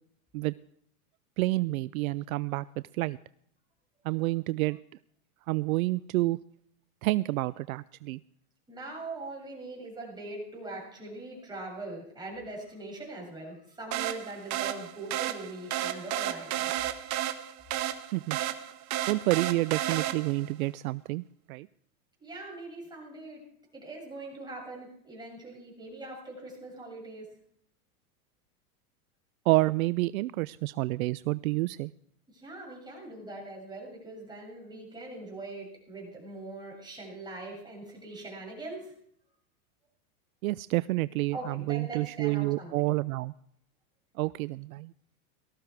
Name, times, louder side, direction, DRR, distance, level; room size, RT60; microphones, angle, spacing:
voice 1, 1.4-2.7 2.9-3.2 4.0-4.8 5.5-6.4 7.0-8.2 18.1-18.4 19.1-21.2 21.5-21.7 29.5-31.9 40.4-43.3 44.2-44.9, right 20 dB, 65° right, 18 dB, 0.5 m, -28 dB
voice 2, 8.7-16.7 22.2-23.4 23.7-27.3 32.3-38.9 41.3-42.7, right 2 dB, 10° right, -2 dB, 7.4 m, -42 dB
sound 1, 13.9-20.5, right 13 dB, 40° right, 1.4 m, -33 dB
18.5 x 14.0 x 4.7 m, 0.66 s
hypercardioid pair, 120°, 45 cm